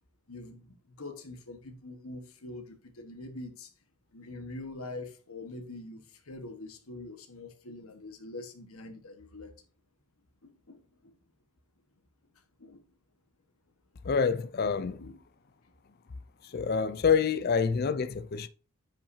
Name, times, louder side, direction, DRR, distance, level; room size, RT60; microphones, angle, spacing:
voice 1, 0.3-3.7 4.1-9.5 10.7-11.2 12.6-12.8 14.8-15.2, left 2 dB, 85° left, 1.4 m, -44 dB
voice 2, 14.0-15.0 16.5-18.5, left 6 dB, 45° left, 0.4 m, -27 dB
10.0 x 5.8 x 2.7 m
head